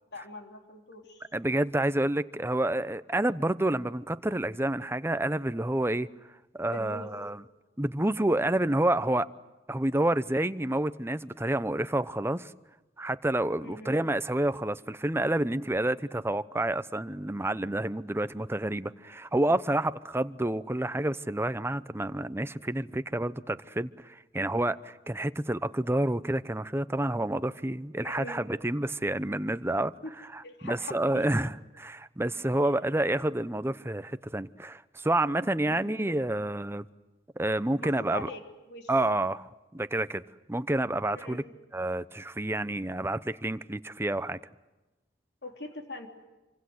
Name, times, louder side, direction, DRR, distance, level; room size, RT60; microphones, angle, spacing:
voice 1, 0.1-1.3 6.7-7.1 13.6-13.9 28.0-28.4 30.0-30.1 30.4-31.2 32.6-32.7 35.8-36.0 37.8-38.4 38.7-38.9 41.1-41.4 45.4-46.1, left 2 dB, 70° left, 3.4 m, -42 dB
voice 2, 1.3-6.1 6.5-7.4 7.8-9.3 9.7-12.5 13.0-29.9 30.3-36.9 37.4-38.3 38.9-40.2 40.5-41.4 41.7-44.4, right 1 dB, 15° right, 0.8 m, -29 dB
27.5 x 25.0 x 8.0 m
head